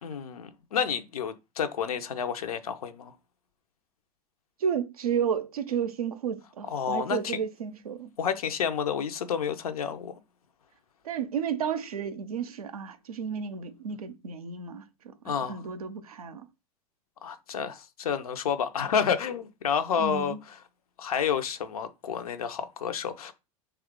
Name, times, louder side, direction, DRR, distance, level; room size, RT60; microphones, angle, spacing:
voice 1, 0.0-3.1 6.7-7.4 8.2-10.1 15.2-15.6 17.2-20.3 21.0-23.3, left 7 dB, 80° left, 0.5 m, -30 dB
voice 2, 4.6-8.1 11.0-16.5 20.0-20.4, right 7 dB, 85° right, 0.5 m, -32 dB
2.8 x 2.3 x 3.5 m
hypercardioid pair, 85°, 19 cm